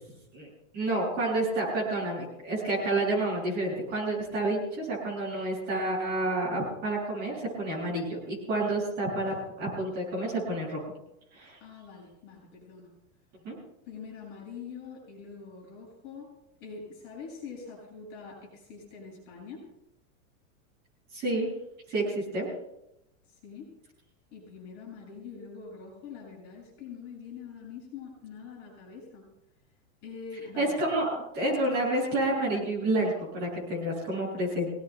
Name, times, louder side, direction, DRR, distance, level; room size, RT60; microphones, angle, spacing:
voice 1, 0.7-10.8 11.3-11.6 13.4-13.6 21.1-21.5 21.9-22.5 30.6-34.7, right 1 dB, 25° right, -5 dB, 7.3 m, -29 dB
voice 2, 11.6-12.9 13.9-16.3 16.6-19.7 23.4-23.7 24.3-29.3 30.0-30.8, left 5 dB, 30° left, -3 dB, 7.1 m, -44 dB
26.5 x 19.0 x 2.3 m, 0.83 s
supercardioid pair, 175°, 42 cm